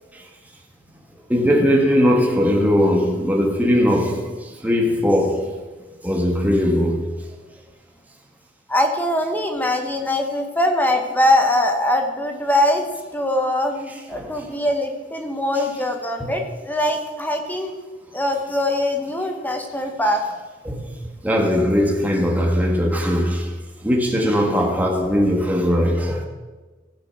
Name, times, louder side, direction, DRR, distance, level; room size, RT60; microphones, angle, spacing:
voice 1, 1.3-4.3 4.6-5.6 6.0-7.1 14.1-14.4 16.2-16.3 20.6-20.8 21.2-23.5 23.8-26.2, equal, 10° right, 1.6 m, -19 dB
voice 2, 8.7-17.7 18.1-20.2, left 1 dB, 10° left, 1.0 m, -22 dB
16.0 x 6.1 x 5.8 m
head